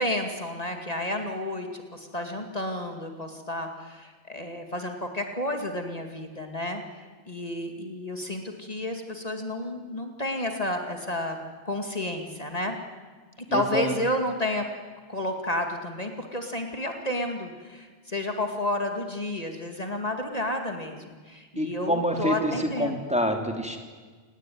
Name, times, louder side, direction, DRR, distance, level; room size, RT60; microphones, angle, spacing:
voice 1, 0.0-6.8 7.3-11.4 11.6-12.8 13.5-14.7 15.1-23.0, left 1 dB, 40° left, 4 dB, 2.5 m, -31 dB
voice 2, 13.5-13.9 21.5-23.8, equal, 5° right, 3 dB, 3.1 m, -27 dB
28.5 x 19.0 x 9.5 m, 1.4 s
omnidirectional pair, 1.0 m